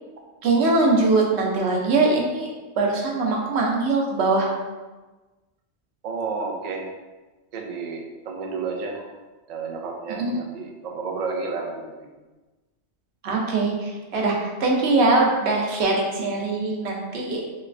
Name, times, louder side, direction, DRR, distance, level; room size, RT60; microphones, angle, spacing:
voice 1, 0.4-2.5 2.8-4.5 10.1-10.3 13.2-17.4, right 3 dB, 65° right, -1 dB, 0.9 m, -22 dB
voice 2, 6.0-6.9 7.5-9.1 9.5-12.1, right 4 dB, 90° right, 1 dB, 0.3 m, -31 dB
3.1 x 3.0 x 2.5 m, 1.2 s
omnidirectional pair, 1.3 m